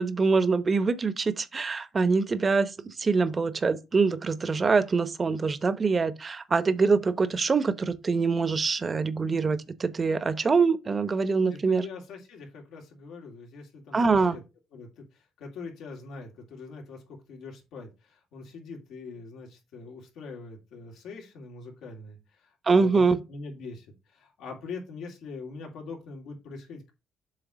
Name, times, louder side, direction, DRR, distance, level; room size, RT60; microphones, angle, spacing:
voice 1, 0.0-11.8 13.9-14.4 22.7-23.2, right 4 dB, 35° right, 0.8 m, -24 dB
voice 2, 11.5-14.4 14.7-26.9, left 4 dB, 85° left, 2.5 m, -43 dB
7.6 x 3.2 x 6.1 m
cardioid pair, 90°, 0 cm